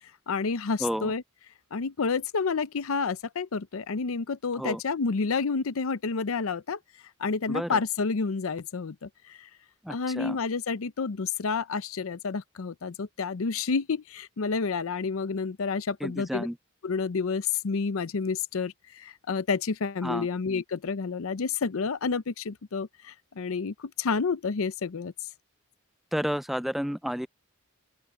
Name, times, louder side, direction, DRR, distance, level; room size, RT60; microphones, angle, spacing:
voice 1, 0.3-1.2 1.7-6.8 7.2-9.5 9.9-16.5 16.8-25.3, left 5 dB, 70° left, 0.6 m, -29 dB
voice 2, 0.8-1.1 4.5-4.8 7.5-7.8 9.8-10.4 16.0-16.6 20.0-20.3 26.1-27.3, equal, ahead, 0.4 m, -31 dB
open air
head